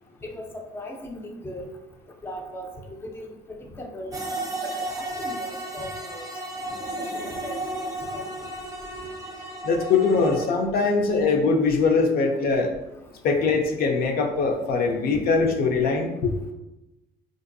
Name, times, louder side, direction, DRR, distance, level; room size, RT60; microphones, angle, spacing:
voice 1, 0.2-1.7 2.2-4.2 4.6-6.2 6.7-7.6 7.8-8.5, left 1 dB, 15° left, 2 dB, 0.4 m, -38 dB
sound 1, 4.1-10.5, right 1 dB, 20° right, 0.7 m, -33 dB
voice 2, 9.6-12.7 13.2-16.3, left 4 dB, 65° left, 3 dB, 0.5 m, -22 dB
3.7 x 2.6 x 2.6 m, 0.98 s
cardioid pair, 110°, 17 cm